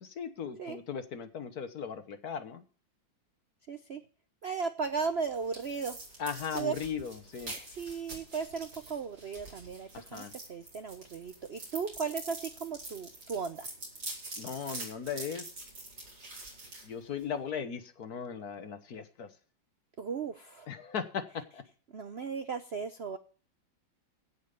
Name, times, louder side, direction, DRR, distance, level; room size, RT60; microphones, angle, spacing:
voice 1, 0.0-2.6 6.2-7.5 9.9-10.3 14.4-15.5 16.8-19.3 20.7-21.6, left 7 dB, 55° left, 10 dB, 1.6 m, -38 dB
voice 2, 3.7-4.0 4.4-6.0 6.5-6.7 7.7-10.2 10.5-13.7 20.0-20.7 21.9-23.2, right 5 dB, 55° right, 9 dB, 0.7 m, -36 dB
sound 1, 4.8-17.5, right 2 dB, 70° right, 5.1 m, -46 dB
16.5 x 5.7 x 6.8 m, 0.41 s
omnidirectional pair, 2.0 m